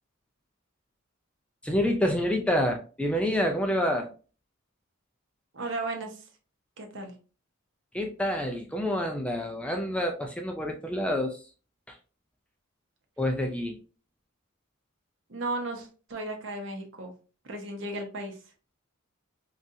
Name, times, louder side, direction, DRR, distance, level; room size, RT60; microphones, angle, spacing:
voice 1, 1.6-4.1 7.9-11.5 11.9-12.0 13.2-13.8, equal, 5° left, 3 dB, 0.3 m, -28 dB
voice 2, 5.5-6.2 6.8-7.1 15.3-17.1 17.4-18.4, right 2 dB, 60° right, 3 dB, 0.8 m, -35 dB
3.8 x 2.5 x 2.6 m, 0.36 s
head